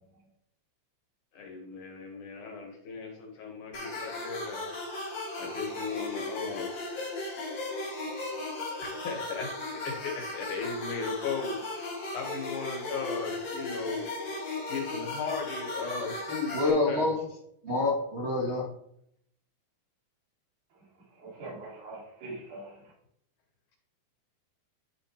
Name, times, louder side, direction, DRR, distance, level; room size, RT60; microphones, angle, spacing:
voice 1, 1.3-4.7 5.4-6.7 8.8-11.8 12.1-14.0 14.7-17.1, left 5 dB, 80° left, 1 dB, 3.2 m, -37 dB
sound 1, 3.7-16.7, left 2 dB, 55° left, 3.6 m, -36 dB
voice 2, 16.5-17.2 17.6-18.7, left 2 dB, 40° right, -5 dB, 0.9 m, -27 dB
voice 3, 20.7-22.9, right 2 dB, 75° right, -6 dB, 4.3 m, -44 dB
10.5 x 6.3 x 3.3 m, 0.73 s
omnidirectional pair, 3.5 m